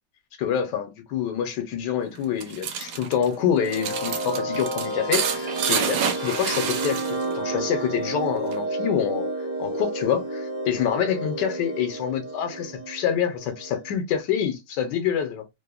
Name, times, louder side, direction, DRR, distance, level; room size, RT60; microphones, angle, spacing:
voice 1, 0.4-9.3 9.6-15.4, left 8 dB, 85° left, 1.3 m, -26 dB
sound 1, 2.1-7.4 7.7-8.6, right 7 dB, 85° right, 1.2 m, -29 dB
sound 2, 3.1-13.9, right 2 dB, 30° right, 0.5 m, -31 dB
3.1 x 2.0 x 2.2 m
omnidirectional pair, 1.8 m